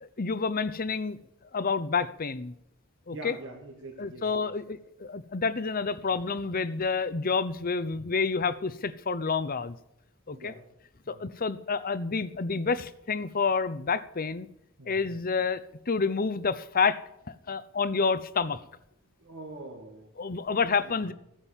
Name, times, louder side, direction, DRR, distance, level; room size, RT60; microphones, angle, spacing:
voice 1, 0.0-1.2 1.5-2.5 3.1-3.4 4.0-9.8 10.3-10.5 11.1-14.5 14.9-17.0 17.3-18.6 20.2-21.1, left 5 dB, 45° left, 14 dB, 0.8 m, -29 dB
voice 2, 3.1-4.5 10.3-10.6 11.1-11.2 14.8-15.0 19.2-20.1 20.8-21.0, right 2 dB, 65° right, 1 dB, 2.1 m, -44 dB
16.0 x 10.0 x 7.3 m, 0.79 s
head